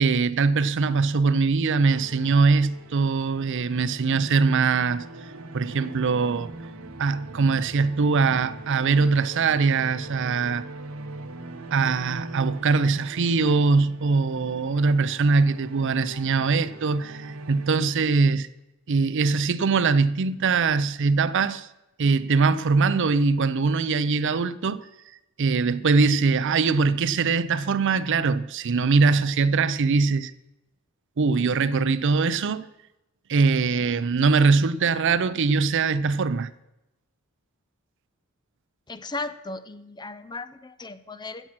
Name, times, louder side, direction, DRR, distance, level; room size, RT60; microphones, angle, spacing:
voice 1, 0.0-5.0 5.5-6.5 7.0-10.6 11.7-18.5 18.9-21.7 22.0-24.8 25.4-30.3 31.2-32.7 33.3-36.5, right 4 dB, 60° right, 0.5 m, -22 dB
Powerful Strings, 1.8-17.9, right 2 dB, 75° right, 1.1 m, -41 dB
voice 2, 38.9-41.5, left 3 dB, 20° left, 0.6 m, -36 dB
15.0 x 7.4 x 6.1 m
head